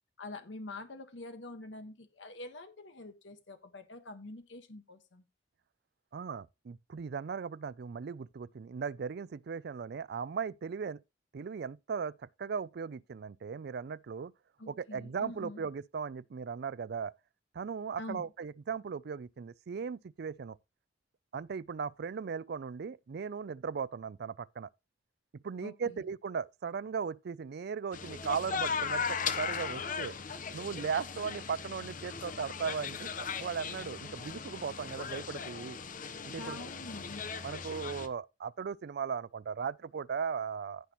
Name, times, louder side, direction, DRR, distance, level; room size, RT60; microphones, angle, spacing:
voice 1, 0.2-5.2 14.6-15.6 18.0-18.3 25.6-26.0 34.1-34.2 36.3-37.3, left 2 dB, 75° left, 1.4 m, -46 dB
voice 2, 6.1-11.0 11.3-14.3 14.7-17.1 17.5-20.6 21.3-24.7 25.3-30.2 30.5-35.8 36.2-36.7 37.4-40.9, right 6 dB, 60° right, 0.4 m, -37 dB
sound 1, 27.9-38.1, left 6 dB, 45° left, 0.9 m, -38 dB
15.5 x 5.9 x 3.0 m
head